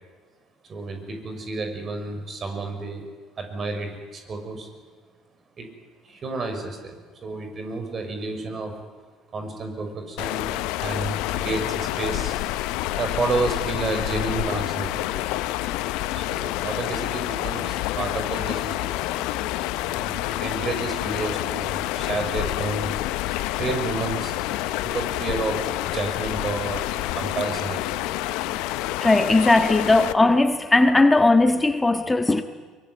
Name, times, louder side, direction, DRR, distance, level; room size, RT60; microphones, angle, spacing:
voice 1, 0.7-3.0 3.4-4.7 5.6-5.7 6.0-8.8 9.3-12.4 13.0-15.2 16.1-18.9 19.8-22.9 23.6-24.4 24.8-28.0, right 3 dB, 40° right, 5 dB, 6.1 m, -30 dB
sound 1, 10.2-30.1, left 16 dB, 65° left, 0.9 m, -28 dB
voice 2, 29.0-32.4, left 2 dB, 15° left, 8 dB, 1.6 m, -18 dB
23.0 x 22.5 x 9.6 m, 1.4 s
hypercardioid pair, 60°, 0 cm